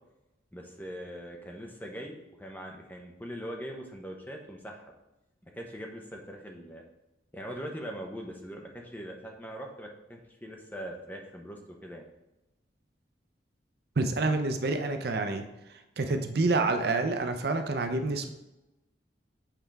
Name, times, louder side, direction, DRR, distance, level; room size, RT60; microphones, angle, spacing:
voice 1, 0.5-4.9 5.5-6.8 7.3-12.1, equal, 10° left, 1 dB, 0.7 m, -41 dB
voice 2, 14.0-15.5 16.0-18.3, right 3 dB, 60° right, 6 dB, 0.5 m, -28 dB
7.5 x 4.4 x 3.4 m, 0.96 s
head